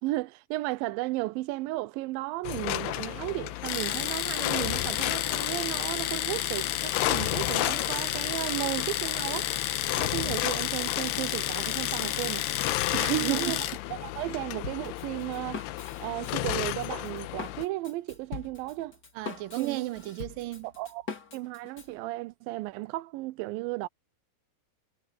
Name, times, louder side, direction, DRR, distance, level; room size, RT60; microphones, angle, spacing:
voice 1, 0.0-9.5 10.0-12.5 13.2-13.6 13.9-15.7 16.0-19.0 19.6-19.8 20.6-21.1 21.3-23.9, right 18 dB, 90° right, 2.0 m, -34 dB
sound 1, 2.4-17.7, left 16 dB, 90° left, 2.7 m, -34 dB
Domestic sounds home sounds, 3.7-13.8, left 12 dB, 70° left, 2.9 m, -31 dB
voice 2, 12.9-13.6 19.2-20.7, right 16 dB, 75° right, 2.2 m, -32 dB
Drum kit, 14.6-21.9, left 4 dB, 30° left, 2.5 m, -42 dB
omnidirectional pair, 4.7 m